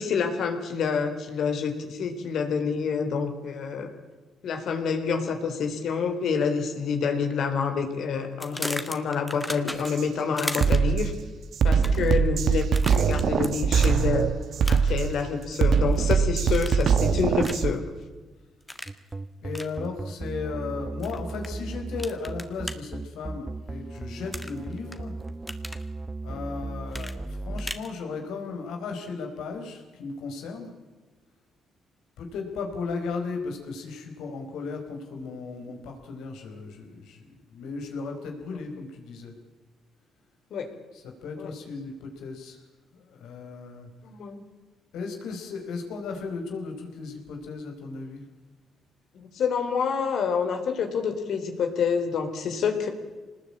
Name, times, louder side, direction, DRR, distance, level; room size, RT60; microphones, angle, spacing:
voice 1, 0.0-3.9 4.4-11.1 11.6-14.3 14.7-17.8 40.5-40.7 41.4-41.5 44.0-44.4 49.1-52.9, left 6 dB, 70° left, 5 dB, 3.7 m, -27 dB
sound 1, 8.4-10.1 10.4-11.0 11.7-12.1 12.7-13.5 13.8-14.0 14.6-15.0 15.4-16.1 16.5-17.0 17.4-17.7 18.7-19.0 19.5-19.7 21.0-21.5 22.0-22.8 24.3-25.0 25.3-25.8 26.9-27.9, left 1 dB, 10° left, 1.9 m, -36 dB
Drum kit, 9.9-10.0 10.5-17.7, right 6 dB, 65° right, 1.3 m, -23 dB
sound 2, 18.9-27.7, right 2 dB, 20° right, 1.1 m, -36 dB
voice 2, 19.4-25.1 26.2-30.7 32.2-39.3 40.9-42.6 42.9-43.9 44.9-48.2, left 4 dB, 85° left, 3 dB, 4.7 m, -36 dB
25.0 x 20.0 x 8.7 m, 1.2 s
cardioid pair, 90°, 0 cm